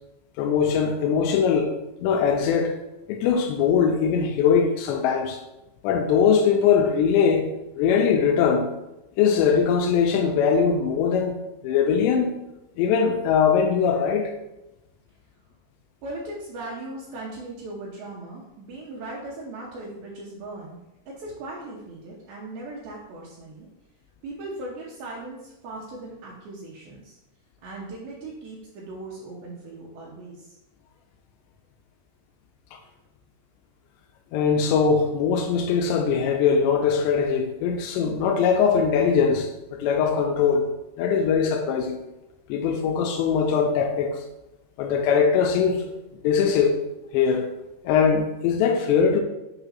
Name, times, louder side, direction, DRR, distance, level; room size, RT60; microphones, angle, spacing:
voice 1, 0.4-1.7 2.0-2.8 3.1-5.4 5.8-7.5 7.8-8.7 9.2-11.4 11.6-12.3 12.8-14.3 32.7-32.8 34.3-40.7 41.0-42.0 42.5-44.2 44.8-45.8 46.2-46.8 47.1-47.5 47.8-49.2, left 6 dB, 85° left, 2.9 m, -21 dB
voice 2, 16.0-20.8 21.1-23.7 24.2-27.2 27.6-30.5, right 2 dB, 70° right, 2.6 m, -38 dB
7.0 x 3.3 x 5.6 m
omnidirectional pair, 5.0 m